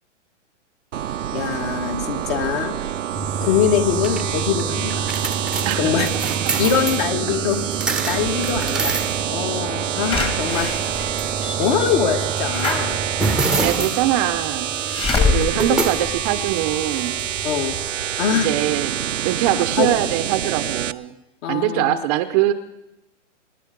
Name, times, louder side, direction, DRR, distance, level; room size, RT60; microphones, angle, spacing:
sound 1, 0.9-20.9, right 10 dB, 85° right, 0.8 m, -26 dB
voice 1, 1.3-2.8 3.4-5.1 5.8-6.1 6.6-7.6 8.1-8.9 9.3-10.7 11.6-13.0 15.1-15.4 15.7-15.8 17.4-17.7 18.2-18.5 19.8-19.9 21.4-21.9, left 8 dB, 45° left, 6 dB, 2.1 m, -23 dB
sound 2, 3.2-17.9, right 3 dB, ahead, 1.0 m, -28 dB
voice 2, 5.6-6.1 6.4-6.5 7.1-7.4 13.5-14.7 15.3-17.2 18.3-18.9 19.2-21.1 21.5-22.5, right 13 dB, 30° right, 11 dB, 0.8 m, -22 dB
Slam / Alarm, 10.1-16.9 17.4-17.5 17.7-17.8, left 4 dB, 15° left, 1.6 m, -26 dB
25.5 x 10.5 x 5.3 m, 0.93 s
hypercardioid pair, 140°, 36 cm